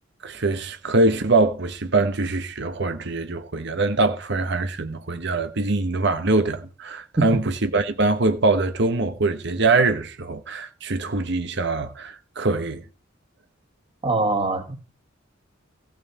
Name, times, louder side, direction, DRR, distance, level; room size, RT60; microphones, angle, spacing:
voice 1, 0.2-12.8, right 3 dB, 60° right, 1.1 m, -23 dB
voice 2, 14.0-14.8, right 2 dB, 25° right, 2.0 m, -22 dB
15.5 x 6.4 x 5.6 m
head